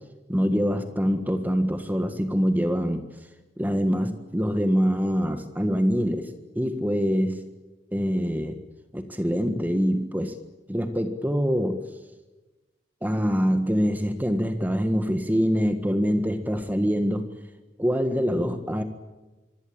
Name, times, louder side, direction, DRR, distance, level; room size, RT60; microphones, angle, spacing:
voice 1, 0.3-3.0 3.6-7.4 7.9-8.6 8.9-10.4 10.7-11.8 13.0-17.3 17.8-18.8, equal, 10° right, 8 dB, 1.6 m, -24 dB
25.0 x 25.0 x 8.9 m, 1.1 s
head